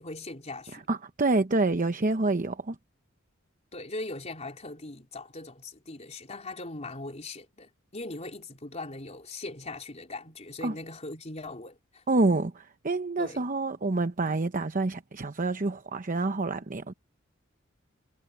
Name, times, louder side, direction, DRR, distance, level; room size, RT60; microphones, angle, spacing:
voice 1, 0.0-0.9 3.7-12.0 13.2-13.5, left 2 dB, 35° left, 4.0 m, -40 dB
voice 2, 0.7-2.8 10.6-10.7 12.1-16.9, right 2 dB, 40° right, 0.9 m, -27 dB
head